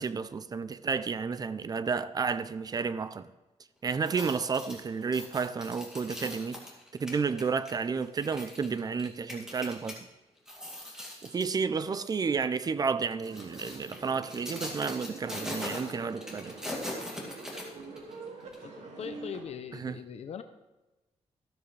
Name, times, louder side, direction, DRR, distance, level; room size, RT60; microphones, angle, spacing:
voice 1, 0.0-3.3 3.8-6.7 6.9-10.0 11.2-16.5 19.7-20.0, right 5 dB, 35° right, 0.5 m, -31 dB
sound 1, 3.9-10.0 10.4-11.5 12.0-12.2 13.0-18.1 18.5-18.6, left 1 dB, 5° right, 2.4 m, -41 dB
sound 2, 13.2-19.4, right 3 dB, 80° right, 2.3 m, -45 dB
voice 2, 18.6-20.4, left 7 dB, 65° left, 0.7 m, -41 dB
13.5 x 13.0 x 3.3 m
wide cardioid pair, 140°, 12 cm